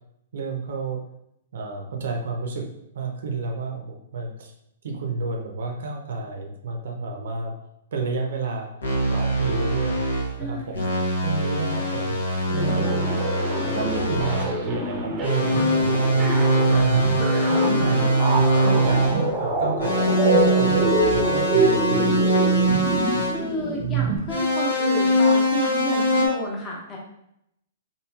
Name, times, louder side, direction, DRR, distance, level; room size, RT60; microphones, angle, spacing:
voice 1, 0.3-1.0 1.5-2.7 2.9-4.5 4.8-7.5 7.9-8.7 9.1-10.0 10.4-10.8 11.2-12.1 12.5-13.1 13.7-18.1 18.6-20.8 21.1-22.6, right 3 dB, 70° right, 2 dB, 0.5 m, -30 dB
sound 1, 8.8-10.3 10.7-14.5 15.2-19.3 19.8-23.4 24.3-26.3, right 1 dB, 90° left, 0.8 m, -22 dB
voice 2, 10.4-11.0 15.6-15.7 23.2-27.0, equal, 20° left, -3 dB, 0.9 m, -31 dB
sound 2, 12.6-24.2, right 2 dB, 25° right, 0.6 m, -26 dB
2.9 x 2.6 x 2.3 m, 0.78 s
hypercardioid pair, 125°, 0 cm